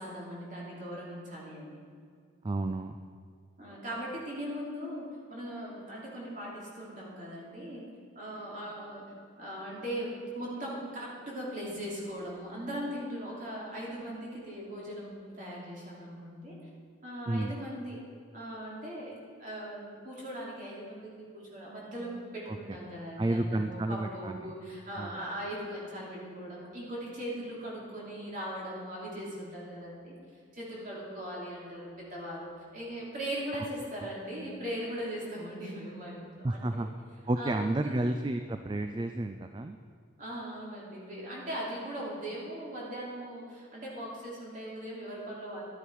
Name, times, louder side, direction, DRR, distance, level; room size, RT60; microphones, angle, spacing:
voice 1, 0.0-1.8 3.6-7.9 8.1-16.6 17.0-18.0 18.3-30.1 30.5-36.9 37.4-38.1 40.2-45.6, equal, 40° right, -5 dB, 3.1 m, -39 dB
voice 2, 2.4-3.0 17.3-17.5 22.5-22.8 23.2-24.4 24.9-25.2 33.6-33.7 36.4-36.9 37.3-39.8, right 2 dB, 25° right, 7 dB, 0.3 m, -31 dB
12.0 x 9.9 x 4.7 m, 2.2 s
head